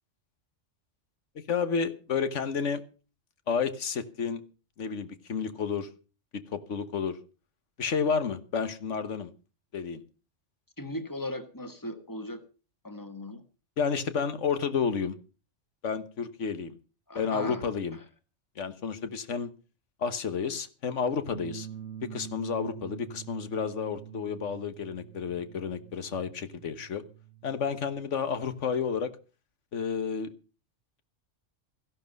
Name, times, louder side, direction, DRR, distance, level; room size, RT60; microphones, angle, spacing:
voice 1, 1.3-2.8 3.5-4.4 4.8-5.9 6.3-7.2 7.8-9.3 9.7-10.0 13.8-15.2 15.8-16.8 17.1-18.0 18.6-19.5 20.0-21.7 22.1-27.0 27.4-29.1 29.7-30.3, left 6 dB, 80° left, 1.5 m, -31 dB
voice 2, 10.8-12.4 12.8-13.4 17.1-17.6, left 1 dB, 15° left, 1.5 m, -37 dB
sound 1, 21.3-28.0, right 10 dB, 70° right, 1.2 m, -46 dB
15.0 x 11.5 x 5.3 m
omnidirectional pair, 1.2 m